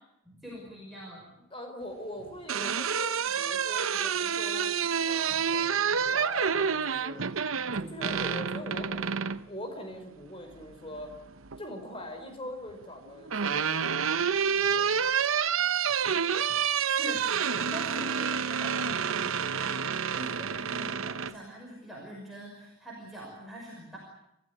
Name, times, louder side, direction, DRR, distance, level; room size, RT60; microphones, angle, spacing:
voice 1, 0.2-1.3 5.3-5.4 16.9-24.0, equal, ahead, -4 dB, 5.7 m, -44 dB
voice 2, 1.5-4.7 5.0-7.3 7.7-11.1 11.6-15.0, left 1 dB, 25° left, 5 dB, 4.8 m, -42 dB
sound 1, 2.2-9.4 10.9-11.6 12.8-21.3, right 7 dB, 75° right, 0.9 m, -28 dB
28.5 x 15.5 x 9.8 m, 0.85 s
head